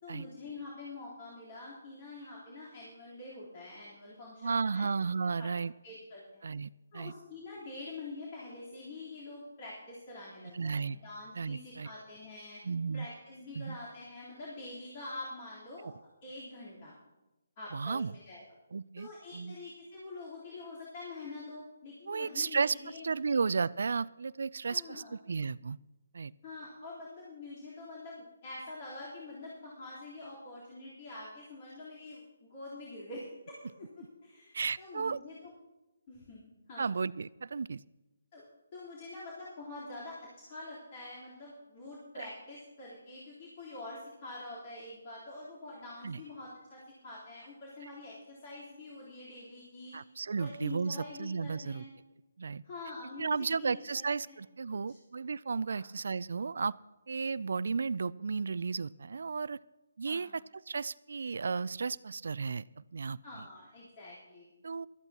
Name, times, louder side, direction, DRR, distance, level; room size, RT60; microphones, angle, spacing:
voice 1, 0.0-4.9 5.4-5.5 5.8-6.4 6.9-12.6 12.9-15.9 16.2-16.9 17.6-18.4 19.0-23.4 24.6-25.1 26.4-33.3 33.8-33.9 34.2-35.5 36.1-37.0 38.3-38.4 38.7-50.0 50.3-51.9 52.6-54.4 54.7-55.0 55.7-55.9 60.1-60.4 63.2-64.5, left 2 dB, 35° left, -8 dB, 3.6 m, -46 dB
voice 2, 4.4-5.7 6.4-7.1 10.5-11.0 11.4-11.9 12.6-13.1 13.6-13.8 17.7-18.1 18.7-19.6 22.1-25.8 26.1-26.3 34.5-35.2 36.8-37.8 42.2-42.3 46.0-46.2 49.9-51.8 52.4-52.6 53.2-56.8 57.1-59.6 60.0-63.2 64.6-64.9, right 5 dB, 65° right, 20 dB, 0.3 m, -34 dB
18.0 x 13.5 x 2.9 m, 1.0 s
hypercardioid pair, 155°, 0 cm